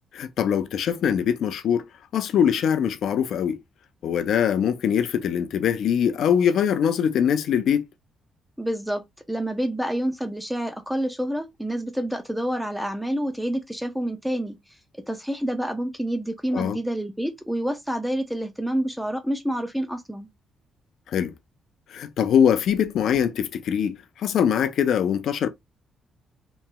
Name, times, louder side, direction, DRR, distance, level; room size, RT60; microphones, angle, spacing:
voice 1, 0.1-3.6 4.0-7.8 16.5-16.8 21.1-21.3 21.9-25.5, left 8 dB, 70° left, 0.4 m, -22 dB
voice 2, 8.6-9.0 9.3-14.6 15.1-20.3, right 1 dB, ahead, 0.6 m, -28 dB
3.0 x 2.7 x 2.2 m
cardioid pair, 90°, 0 cm